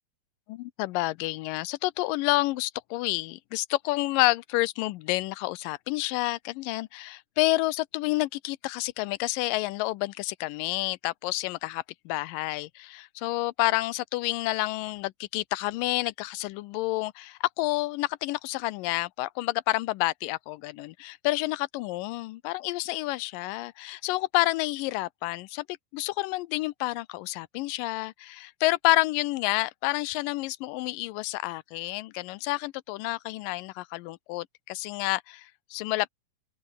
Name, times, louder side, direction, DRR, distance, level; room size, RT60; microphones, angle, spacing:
voice 1, 0.5-36.1, left 19 dB, 85° left, 2.3 m, -29 dB
open air
omnidirectional pair, 3.9 m